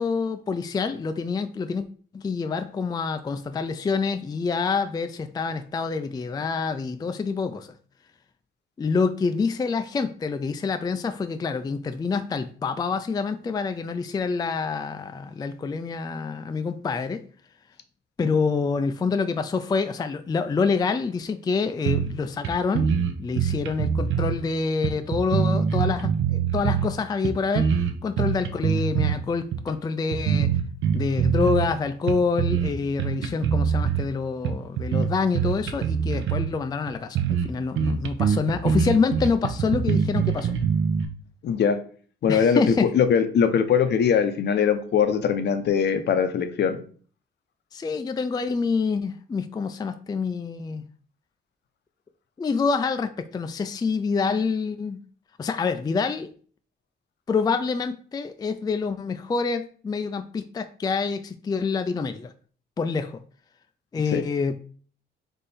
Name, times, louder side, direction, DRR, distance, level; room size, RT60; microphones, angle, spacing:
voice 1, 0.0-1.8 2.1-7.8 8.8-17.2 18.2-22.9 23.2-30.6 30.9-40.5 42.3-42.9 47.7-50.9 52.4-55.0 55.4-56.3 57.3-62.3 62.8-63.2 63.9-64.6, left 4 dB, 20° left, 9 dB, 0.3 m, -27 dB
sound 1, 21.9-22.2 22.4-22.5 22.7-24.4 24.8-26.9 27.2-29.2 29.5-29.7 30.1-31.7 32.1-32.7 33.0-34.1 34.4-36.5 36.9-37.0 37.2-37.5 37.8-41.1, right 7 dB, 75° right, 0.7 m, -24 dB
voice 2, 41.4-41.8 42.2-46.8 64.1-64.2, left 7 dB, 60° left, 9 dB, 0.7 m, -21 dB
3.6 x 3.3 x 4.1 m, 0.44 s
cardioid pair, 90°, 20 cm